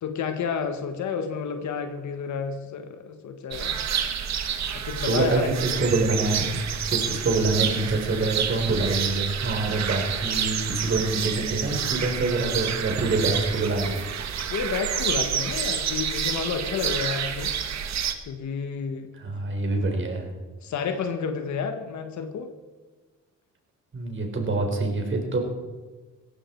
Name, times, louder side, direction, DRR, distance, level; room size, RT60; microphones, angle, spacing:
voice 1, 0.0-3.8 4.7-5.8 14.5-17.6 18.2-19.1 20.6-22.5, left 6 dB, 70° left, 6 dB, 1.6 m, -30 dB
sound 1, 3.5-18.1, right 8 dB, 65° right, 1.6 m, -29 dB
voice 2, 5.0-6.6 6.9-14.1 19.1-20.3 23.9-25.4, right 3 dB, 40° right, 3 dB, 4.4 m, -26 dB
17.5 x 15.0 x 4.7 m, 1.3 s
cardioid pair, 90°, 30 cm